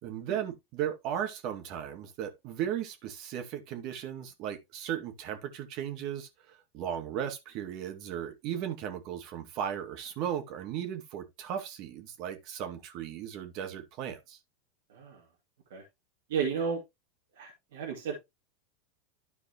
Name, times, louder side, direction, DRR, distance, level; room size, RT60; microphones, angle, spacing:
voice 1, 0.0-14.4, right 9 dB, 50° right, 2.2 m, -36 dB
voice 2, 16.3-16.8 17.4-18.2, right 6 dB, 80° right, 2.6 m, -33 dB
13.0 x 4.7 x 3.0 m
hypercardioid pair, 115°, 0 cm